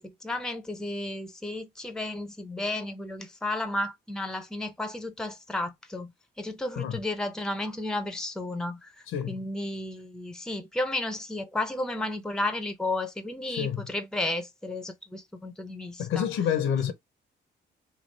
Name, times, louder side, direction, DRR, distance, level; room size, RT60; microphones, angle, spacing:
voice 1, 0.0-6.1 6.4-16.3, left 2 dB, 5° left, 0.6 m, -33 dB
voice 2, 16.0-16.9, left 9 dB, 80° left, 0.9 m, -27 dB
3.2 x 2.4 x 3.2 m
cardioid pair, 90°, 20 cm